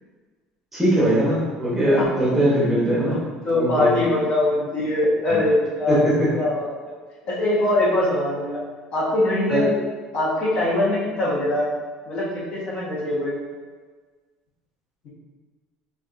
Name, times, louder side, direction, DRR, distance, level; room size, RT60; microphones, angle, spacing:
voice 1, 0.7-3.2 3.5-3.9 5.3-5.4 5.9-6.3 9.5-9.6, right 1 dB, 10° right, -7 dB, 0.9 m, -20 dB
voice 2, 3.4-6.1 6.3-6.7 7.2-8.6 8.9-9.7 10.1-11.7 12.1-13.4, left 1 dB, 45° left, -7 dB, 1.2 m, -22 dB
4.6 x 2.9 x 2.5 m, 1.4 s
cardioid pair, 165°, 2 cm